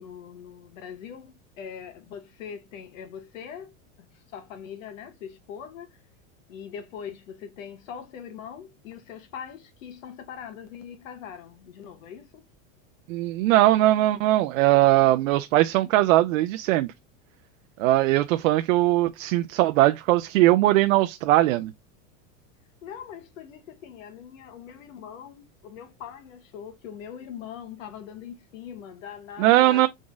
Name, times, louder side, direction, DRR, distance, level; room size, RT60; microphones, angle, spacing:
voice 1, 0.0-3.7 4.1-6.0 6.5-12.4 22.8-29.9, left 8 dB, 80° left, 1.5 m, -41 dB
voice 2, 13.1-16.9 17.8-21.7 29.4-29.9, right 15 dB, 75° right, 0.6 m, -20 dB
3.9 x 3.7 x 3.6 m
supercardioid pair, 165°, 40 cm